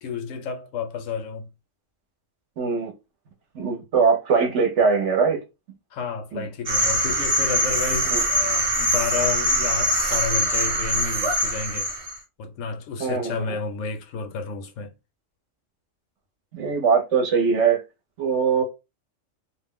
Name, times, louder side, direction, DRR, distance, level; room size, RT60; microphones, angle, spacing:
voice 1, 0.0-1.5 5.9-11.9 12.4-14.9, left 5 dB, 75° left, 0.9 m, -31 dB
voice 2, 2.6-2.9 3.5-5.4 6.3-6.4 8.1-8.2 13.0-13.6 16.5-17.8 18.2-18.6, right 5 dB, 65° right, 1.0 m, -21 dB
sound 1, 6.7-12.2, right 1 dB, 40° right, 0.9 m, -23 dB
2.5 x 2.1 x 3.5 m
omnidirectional pair, 1.4 m